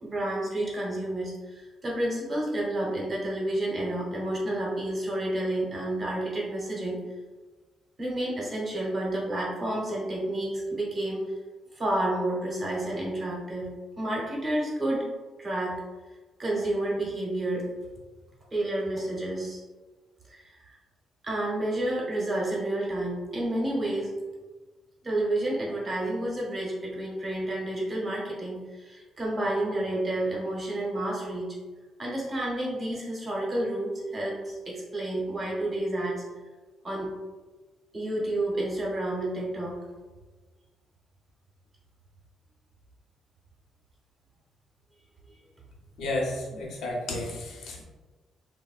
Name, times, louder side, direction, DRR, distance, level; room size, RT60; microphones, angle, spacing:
voice 1, 0.0-7.0 8.0-11.2 11.7-13.7 14.0-15.1 15.4-15.8 16.4-17.6 18.5-19.6 20.3-20.8 21.2-24.1 25.0-31.6 32.0-36.2 36.8-37.1 37.9-39.8 45.3-45.4, right 1 dB, 25° right, -4 dB, 0.8 m, -30 dB
voice 2, 46.0-47.8, left 2 dB, 85° left, -2 dB, 0.8 m, -32 dB
3.5 x 2.1 x 2.3 m, 1.3 s
cardioid pair, 160°, 0 cm